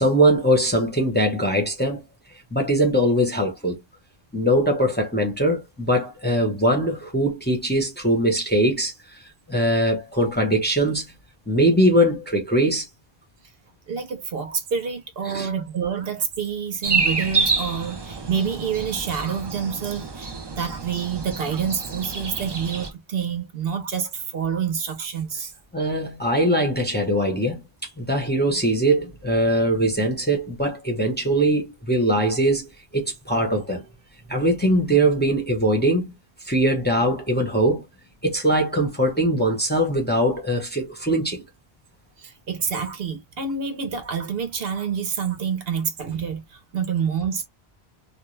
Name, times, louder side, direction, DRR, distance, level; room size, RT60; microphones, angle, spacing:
voice 1, 0.0-2.0 2.5-3.8 4.3-9.2 9.5-11.1 11.5-12.9 15.3-15.5 25.7-27.6 28.0-33.8 34.3-36.1 36.4-37.8 38.2-41.4, right 1 dB, 10° left, 0.7 m, -21 dB
voice 2, 13.9-25.5 42.2-47.5, right 7 dB, 70° right, 0.9 m, -27 dB
sound 1, 16.8-22.9, right 4 dB, 35° right, 0.4 m, -28 dB
2.4 x 2.2 x 3.1 m
omnidirectional pair, 1.0 m